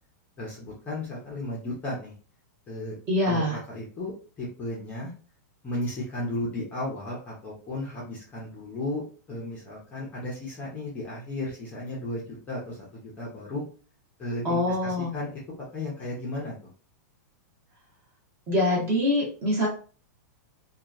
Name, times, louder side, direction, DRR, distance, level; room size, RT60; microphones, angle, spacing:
voice 1, 0.4-2.1 2.7-3.0 3.2-5.1 5.6-13.6 14.2-15.4 15.7-16.5, left 1 dB, 15° left, -5 dB, 0.7 m, -34 dB
voice 2, 3.1-3.6 14.4-15.1 18.5-19.7, left 1 dB, 20° right, -4 dB, 1.1 m, -24 dB
2.9 x 2.2 x 2.4 m, 0.39 s
supercardioid pair, 170°, 10 cm